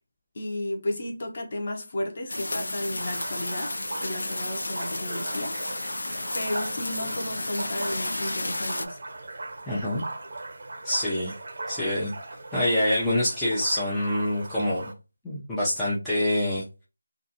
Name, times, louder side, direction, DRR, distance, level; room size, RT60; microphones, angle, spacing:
voice 1, 0.3-5.6 6.3-9.0, left 1 dB, 35° left, 0.8 m, -33 dB
sound 1, 2.3-8.9, left 2 dB, 75° left, 0.4 m, -32 dB
sound 2, 3.0-14.9, right 2 dB, 45° right, 0.6 m, -39 dB
voice 2, 9.7-10.0 10.8-11.3 11.7-12.1 12.5-14.9 15.2-16.6, left 1 dB, ahead, 0.4 m, -26 dB
2.5 x 2.4 x 2.6 m
figure-of-eight pair, 175°, 0 cm